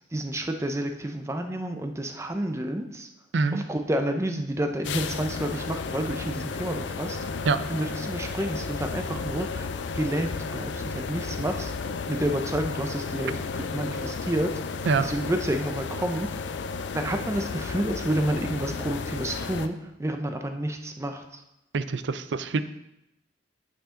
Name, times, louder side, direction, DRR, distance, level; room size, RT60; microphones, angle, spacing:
voice 1, 0.1-3.1 3.5-7.2 7.7-9.7 9.9-11.7 12.1-16.5 16.9-21.2, right 1 dB, 15° right, 5 dB, 0.6 m, -30 dB
voice 2, 3.3-3.6 7.4-7.6 14.9-15.1 21.7-22.6, right 4 dB, 75° right, 12 dB, 0.5 m, -25 dB
sound 1, 4.8-19.7, left 4 dB, 75° left, 0.4 m, -33 dB
8.6 x 5.5 x 3.8 m, 0.85 s
head